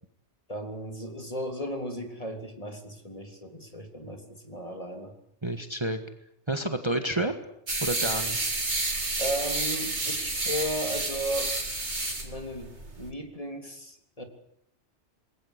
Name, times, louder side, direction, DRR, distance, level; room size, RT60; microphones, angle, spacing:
voice 1, 0.5-5.1 7.1-7.3 9.2-11.5 12.2-14.2, equal, 30° left, 5 dB, 3.4 m, -35 dB
voice 2, 5.4-6.0 6.5-7.3 7.8-8.5, right 1 dB, 25° right, 7 dB, 1.7 m, -29 dB
sound 1, 7.7-13.1, right 2 dB, 75° right, 3.6 m, -30 dB
27.5 x 21.0 x 8.2 m, 0.74 s
omnidirectional pair, 1.2 m